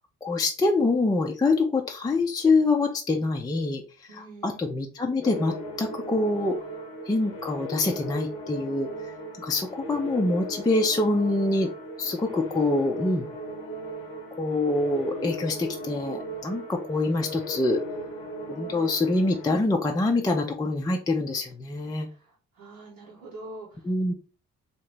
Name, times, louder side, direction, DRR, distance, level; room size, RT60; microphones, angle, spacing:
voice 1, 0.2-3.8 4.4-6.6 7.1-8.9 9.4-11.7 12.0-13.3 14.4-17.8 18.5-22.1 23.8-24.1, left 2 dB, 10° left, 2 dB, 0.4 m, -25 dB
voice 2, 4.1-4.7 22.1-22.2 22.6-23.8, right 2 dB, 85° right, -7 dB, 1.0 m, -44 dB
sound 1, 5.2-19.6, equal, 80° left, 0.8 m, -37 dB
2.8 x 2.7 x 3.2 m, 0.35 s
hypercardioid pair, 40°, 38 cm